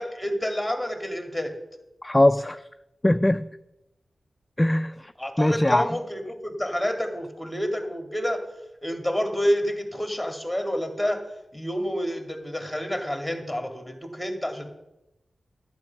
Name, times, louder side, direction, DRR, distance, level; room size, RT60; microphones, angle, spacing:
voice 1, 0.0-1.5 5.2-8.4 8.8-11.2 11.5-14.7, equal, ahead, 2.2 m, -28 dB
voice 2, 2.0-2.6 3.0-3.5 4.6-5.1 5.4-5.9, left 1 dB, 15° left, 0.4 m, -21 dB
11.0 x 8.5 x 5.8 m
cardioid pair, 60°, 0 cm